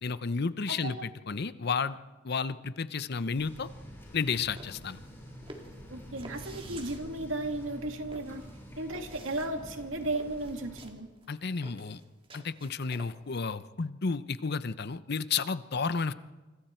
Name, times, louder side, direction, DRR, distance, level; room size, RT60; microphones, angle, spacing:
voice 1, 0.0-2.0 2.2-3.7 4.1-5.0 11.3-12.0 12.3-16.1, left 5 dB, 55° left, 14 dB, 0.7 m, -32 dB
sound 1, 3.4-10.8, equal, 10° left, 7.2 m, -47 dB
sound 2, 4.1-13.4, right 2 dB, 30° right, 2.4 m, -51 dB
voice 2, 5.9-8.4 8.8-11.1, right 2 dB, 80° right, 5 dB, 2.2 m, -35 dB
27.0 x 25.5 x 4.5 m, 1.2 s
head